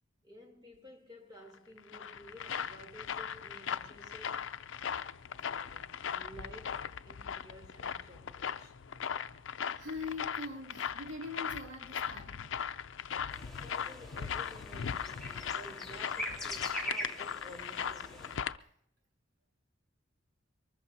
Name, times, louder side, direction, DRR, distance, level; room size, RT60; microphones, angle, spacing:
voice 1, 0.2-4.6 5.4-8.7 13.6-18.4, equal, 25° right, 3.2 m, -53 dB
sound 1, 1.5-18.6, left 7 dB, 85° left, 0.5 m, -39 dB
voice 2, 9.8-12.5, left 3 dB, 80° right, 2.8 m, -42 dB
sound 2, 13.3-18.4, equal, 5° left, 2.8 m, -43 dB
23.5 x 20.5 x 2.8 m
head